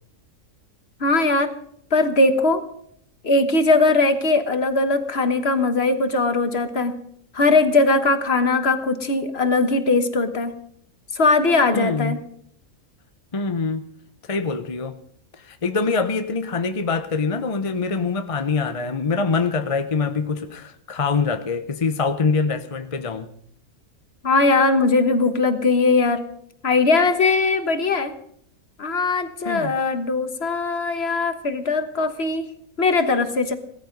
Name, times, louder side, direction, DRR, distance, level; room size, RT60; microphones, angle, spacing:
voice 1, 1.0-1.5 1.9-2.6 3.2-6.9 7.3-10.5 11.1-12.2 24.2-26.2 26.6-28.1 28.8-32.5 32.8-33.5, left 3 dB, 45° left, 10 dB, 1.5 m, -20 dB
voice 2, 11.7-12.2 13.3-13.9 14.3-15.0 15.4-23.3 29.4-29.7, left 4 dB, 30° left, 9 dB, 0.7 m, -24 dB
17.0 x 13.5 x 5.3 m, 0.67 s
omnidirectional pair, 1.5 m